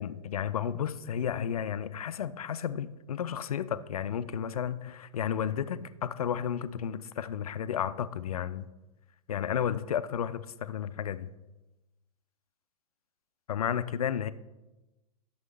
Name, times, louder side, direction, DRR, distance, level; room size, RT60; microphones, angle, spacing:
voice 1, 0.0-8.7 9.3-11.3 13.5-14.3, left 8 dB, 70° left, 0.5 m, -32 dB
11.0 x 7.0 x 3.2 m
figure-of-eight pair, 100°, 20 cm